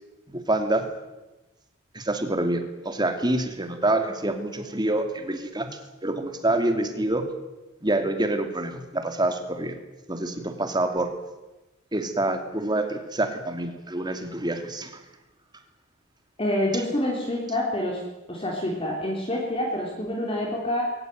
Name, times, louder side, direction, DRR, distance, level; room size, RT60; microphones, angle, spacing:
voice 1, 0.3-0.8 1.9-7.3 7.8-9.8 10.1-11.1 11.9-15.0 16.7-16.8, right 2 dB, 20° right, 6 dB, 2.7 m, -26 dB
voice 2, 16.4-18.0 18.3-20.9, left 1 dB, 25° left, -1 dB, 3.9 m, -27 dB
21.5 x 18.5 x 9.4 m, 1.1 s
head